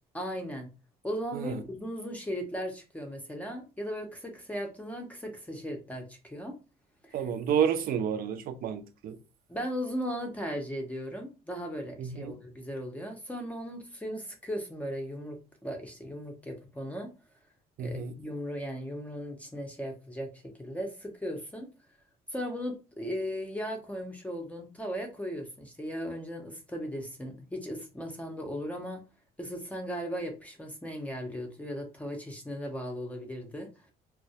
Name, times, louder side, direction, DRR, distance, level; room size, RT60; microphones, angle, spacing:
voice 1, 0.1-0.7 1.0-6.5 7.0-7.2 9.5-17.1 17.8-20.3 20.6-21.7 22.3-29.0 29.4-33.7, equal, 10° left, 0.5 m, -37 dB
voice 2, 1.3-1.6 7.1-9.2 12.0-12.3 17.8-18.1, right 8 dB, 60° right, 0.5 m, -30 dB
2.2 x 2.0 x 2.7 m
cardioid pair, 110°, 17 cm